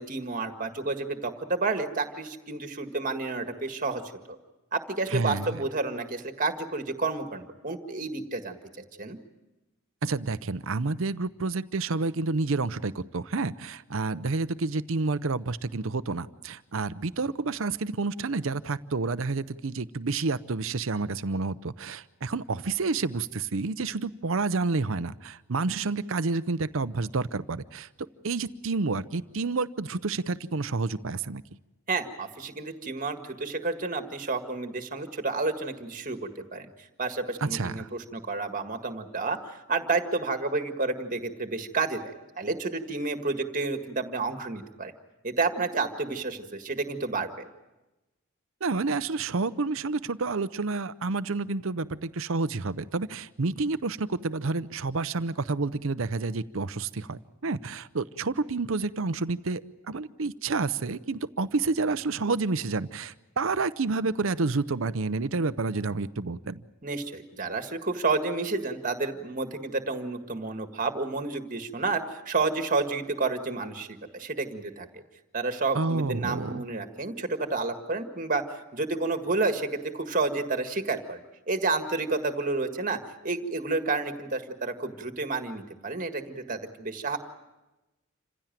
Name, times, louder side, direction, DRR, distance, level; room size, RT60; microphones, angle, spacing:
voice 1, 0.0-4.0 4.3-4.4 4.7-8.6 9.0-9.2 31.9-36.7 37.0-42.0 42.4-44.9 45.2-47.3 66.8-73.9 74.1-75.0 75.3-78.4 78.7-79.7 79.9-81.2 81.5-87.2, right 3 dB, 40° right, 7 dB, 1.8 m, -30 dB
voice 2, 5.1-5.6 10.0-27.9 28.2-31.4 37.4-37.9 48.6-59.6 59.9-66.6 75.7-76.6, right 3 dB, 65° right, 15 dB, 0.7 m, -29 dB
27.5 x 16.0 x 9.1 m, 1.0 s
head